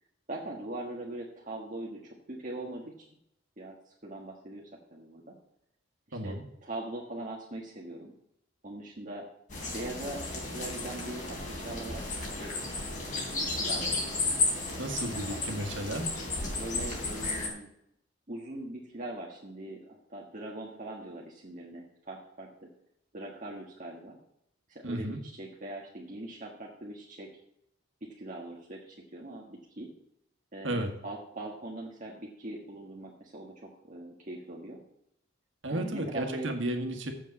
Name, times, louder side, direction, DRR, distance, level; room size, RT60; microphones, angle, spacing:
voice 1, 0.3-2.0 2.3-3.1 3.6-5.3 6.1-8.1 8.6-9.3 9.7-12.5 13.2-14.0 15.1-15.6 16.6-17.7 18.3-22.7 23.1-24.2 24.7-27.3 28.0-29.9 30.5-34.8 35.7-36.5, right 1 dB, 40° right, -2 dB, 1.5 m, -41 dB
voice 2, 6.1-6.4 14.8-16.1 24.8-25.2 30.6-30.9 35.6-37.1, right 1 dB, 75° right, 4 dB, 1.6 m, -33 dB
sound 1, 9.5-17.5, left 3 dB, 40° left, 3.2 m, -33 dB
7.5 x 7.3 x 7.1 m, 0.77 s
head